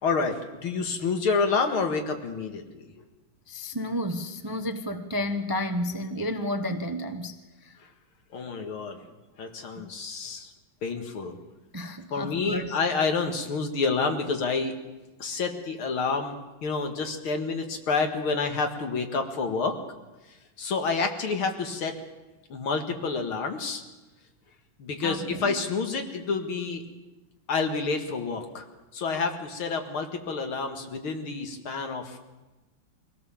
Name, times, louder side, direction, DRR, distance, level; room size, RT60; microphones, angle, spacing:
voice 1, 0.0-2.9 8.3-9.0 9.4-10.5 10.8-11.4 12.1-14.7 15.2-19.8 20.6-21.9 22.5-23.8 24.8-26.8 27.5-28.6 28.9-32.2, left 4 dB, 85° left, 5 dB, 2.7 m, -28 dB
voice 2, 3.5-7.4 7.6-7.8 9.8-9.9 11.7-12.8 25.0-25.6, left 1 dB, 25° right, 7 dB, 0.4 m, -31 dB
23.0 x 16.5 x 7.3 m, 1.1 s
omnidirectional pair, 2.3 m